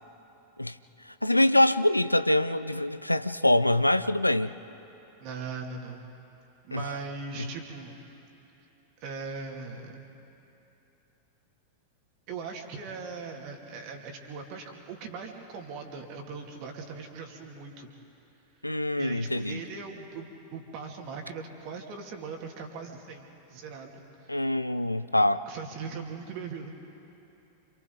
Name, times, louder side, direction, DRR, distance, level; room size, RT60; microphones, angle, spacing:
voice 1, 1.2-4.5 6.7-6.8 18.6-19.6 24.3-25.4, left 1 dB, 85° left, 13 dB, 0.5 m, -24 dB
voice 2, 5.2-6.0 6.7-8.0 9.0-9.9 12.3-17.9 19.0-24.5 25.5-26.7, right 4 dB, 45° right, 2 dB, 2.7 m, -40 dB
29.5 x 27.0 x 4.0 m, 3.0 s
figure-of-eight pair, 90°, 0 cm